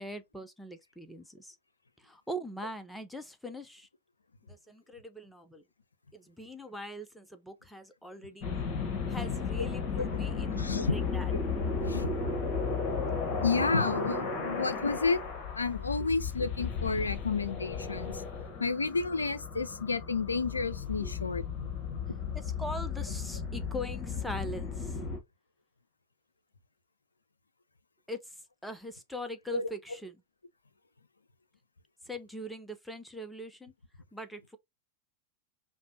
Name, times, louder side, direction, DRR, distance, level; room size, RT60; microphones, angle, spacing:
voice 1, 0.0-1.6 2.0-3.9 4.5-5.6 6.1-8.5 9.1-11.3 16.0-16.1 21.0-21.1 22.2-25.0 28.1-30.2 32.1-33.7 34.1-34.6, equal, 5° left, 0.6 m, -42 dB
sound 1, 8.4-25.2, left 5 dB, 35° left, 1.3 m, -34 dB
voice 2, 10.5-11.0 11.7-12.1 13.4-15.2 15.5-18.1 18.6-21.4 29.5-29.7, left 4 dB, 75° left, 0.4 m, -30 dB
5.0 x 2.1 x 2.8 m
figure-of-eight pair, 90°, 0 cm